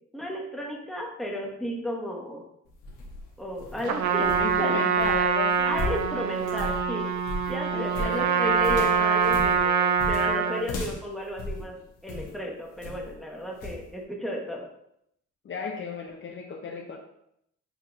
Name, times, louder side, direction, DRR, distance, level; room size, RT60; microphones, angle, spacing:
voice 1, 0.0-2.5 3.4-4.3 4.6-4.8 5.6-7.1 7.5-11.8 12.0-14.7, left 1 dB, ahead, -1 dB, 1.0 m, -33 dB
sound 1, 2.7-12.4 12.8-13.2 13.6-13.8, left 2 dB, 90° left, 1.0 m, -36 dB
Trumpet, 3.8-10.7, right 6 dB, 70° right, 0.5 m, -24 dB
voice 2, 4.2-5.8 7.7-8.6 15.4-17.0, left 4 dB, 40° left, 1 dB, 0.6 m, -35 dB
6.8 x 2.8 x 2.4 m, 0.76 s
cardioid pair, 90°, 30 cm